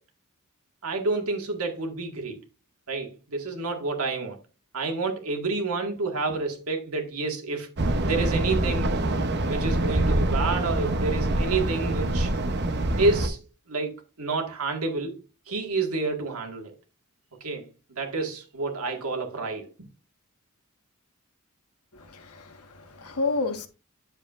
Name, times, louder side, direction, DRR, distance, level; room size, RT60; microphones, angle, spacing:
voice 1, 0.8-2.4 2.9-4.4 4.7-7.8 8.0-8.9 9.5-12.3 13.0-15.2 15.5-16.7 17.4-17.6 18.0-19.7, right 3 dB, 75° right, 1.9 m, -29 dB
sound 1, 7.8-13.3, right 1 dB, 50° right, 0.9 m, -25 dB
voice 2, 21.9-23.7, left 3 dB, 80° left, 1.3 m, -30 dB
9.9 x 7.2 x 2.5 m
head